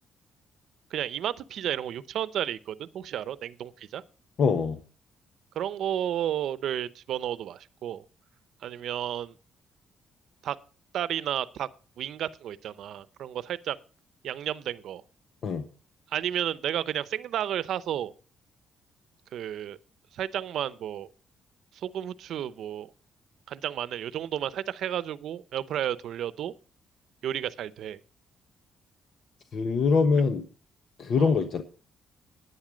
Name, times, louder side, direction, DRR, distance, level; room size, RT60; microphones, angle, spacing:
voice 1, 0.9-4.0 5.5-8.0 8.6-9.3 10.4-10.6 10.9-11.7 12.0-13.8 14.2-15.0 16.1-18.1 19.3-19.8 20.1-21.1 21.7-22.9 23.5-26.5 27.2-28.0 31.2-31.3, right 10 dB, 75° right, 0.7 m, -32 dB
voice 2, 4.4-4.8 15.4-15.6 29.5-30.4 31.0-31.6, left 5 dB, 60° left, 1.2 m, -23 dB
10.5 x 9.6 x 5.1 m
cardioid pair, 90°, 0 cm